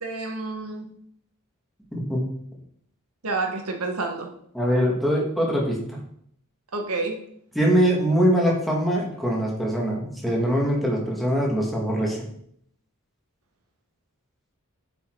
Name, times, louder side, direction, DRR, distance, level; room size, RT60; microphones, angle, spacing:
voice 1, 0.0-0.9 3.2-4.3 6.7-7.2, right 3 dB, 75° right, 3 dB, 1.5 m, -29 dB
voice 2, 1.9-2.3 4.5-6.0 7.6-12.2, equal, ahead, -3 dB, 1.9 m, -23 dB
8.4 x 5.7 x 4.6 m, 0.67 s
head